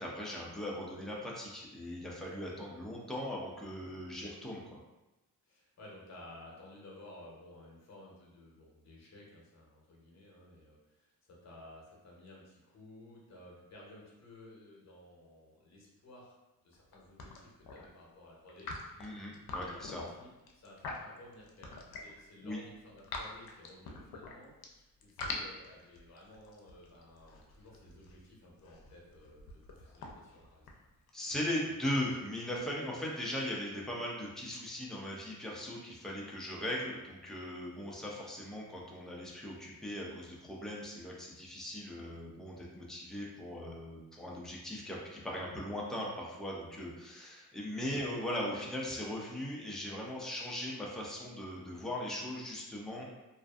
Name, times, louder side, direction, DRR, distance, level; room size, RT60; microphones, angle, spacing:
voice 1, 0.0-4.8 19.0-20.0 22.4-22.6 31.1-53.1, left 1 dB, ahead, -4 dB, 0.3 m, -39 dB
voice 2, 5.4-16.3 16.6-18.7 19.5-30.7 47.9-48.1, left 1 dB, 50° left, -3 dB, 0.7 m, -55 dB
sound 1, 16.7-16.9 17.2-17.9 18.5-22.2 22.6-24.7 25.0-31.1, left 3 dB, 90° left, 0.5 m, -44 dB
2.4 x 2.4 x 2.3 m, 1.0 s
wide cardioid pair, 165°, 35 cm